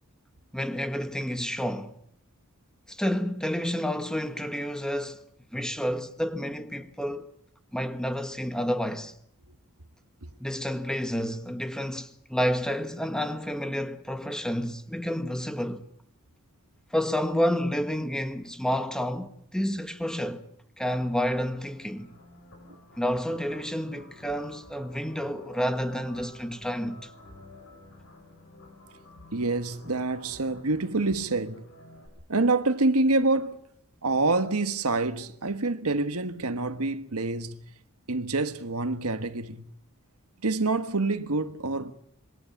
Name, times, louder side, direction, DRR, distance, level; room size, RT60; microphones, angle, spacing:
voice 1, 0.5-1.9 2.9-5.2 5.5-7.3 7.7-9.1 10.4-15.8 16.9-20.5 20.8-22.1 23.0-27.1, equal, 5° left, 1.4 m, -30 dB
sound 1, 20.8-32.1, left 2 dB, 65° left, 7.9 m, -50 dB
voice 2, 29.3-31.6 32.3-33.6 34.0-37.6 38.1-39.7 40.4-41.9, right 3 dB, 75° right, 1.4 m, -26 dB
26.5 x 22.5 x 7.2 m
head